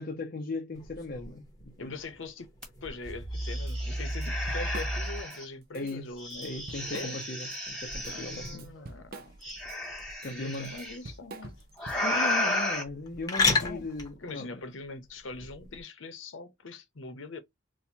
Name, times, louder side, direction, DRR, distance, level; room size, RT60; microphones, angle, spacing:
voice 1, 0.0-2.0 5.7-8.7 10.2-10.8 12.0-14.6, left 2 dB, 45° left, 0.6 m, -38 dB
sound 1, 0.7-15.8, left 4 dB, 20° left, 0.9 m, -37 dB
voice 2, 1.8-2.5 2.8-6.5 6.9-7.2 8.1-9.3 10.2-11.6 13.5-13.9 14.2-17.4, left 3 dB, 75° left, 0.8 m, -42 dB
sound 2, 2.6-2.7 3.1-5.4 6.2-8.6 9.4-11.0 11.8-12.8, left 1 dB, 5° left, 1.6 m, -32 dB
Drum kit / Drum, 3.7-3.8 4.1-5.4 5.7-5.9 6.3-7.6 7.9-12.3, right 3 dB, 50° right, 0.7 m, -46 dB
4.3 x 2.2 x 2.7 m
head